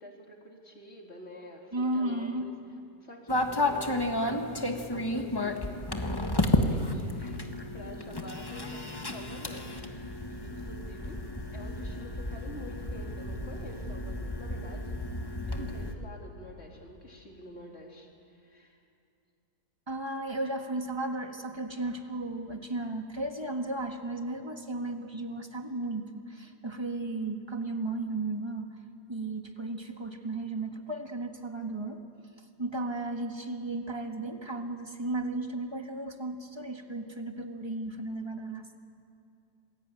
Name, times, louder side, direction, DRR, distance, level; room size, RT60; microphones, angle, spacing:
voice 1, 0.0-2.6 3.0-4.4 4.9-7.4 7.7-11.2 11.5-15.0 15.5-18.8, equal, 40° left, 0 dB, 3.7 m, -48 dB
voice 2, 1.7-2.5 19.9-28.7 29.1-32.0 32.6-38.8, right 2 dB, 15° right, 4 dB, 1.6 m, -34 dB
sound 1, 3.3-15.9, left 1 dB, 15° left, 1.4 m, -32 dB
27.5 x 21.0 x 9.1 m, 2.5 s
omnidirectional pair, 1.7 m